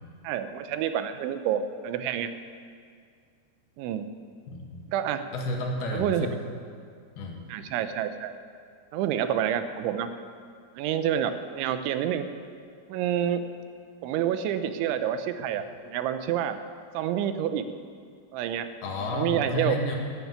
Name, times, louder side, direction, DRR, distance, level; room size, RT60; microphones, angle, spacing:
voice 1, 0.2-2.3 3.8-4.1 4.9-5.2 5.9-6.3 7.5-8.3 8.9-10.1 10.8-12.3 12.9-13.4 14.0-16.6 16.9-17.7 18.3-18.7 19.1-19.8, right 10 dB, 85° right, 10 dB, 3.2 m, -28 dB
voice 2, 4.5-4.8 5.3-6.4 7.1-7.4 18.8-20.0, left 1 dB, 65° left, 1 dB, 3.2 m, -31 dB
14.5 x 9.7 x 9.5 m, 2.2 s
omnidirectional pair, 5.3 m